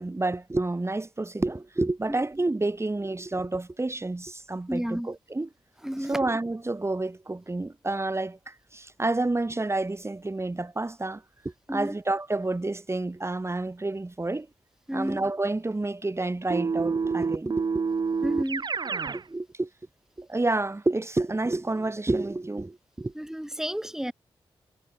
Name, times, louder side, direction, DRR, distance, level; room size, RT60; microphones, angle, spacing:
voice 1, 0.0-5.5 6.0-14.5 14.9-17.8 19.1-19.7 20.2-23.1, right 2 dB, 25° right, 5.4 m, -29 dB
voice 2, 4.7-5.1 5.8-6.2 11.7-11.9 14.9-15.2 18.2-18.6 23.2-24.1, equal, 5° right, 5.2 m, -31 dB
Keyboard (musical), 16.5-19.2, right 5 dB, 45° right, 0.7 m, -28 dB
cardioid pair, 55°, 10 cm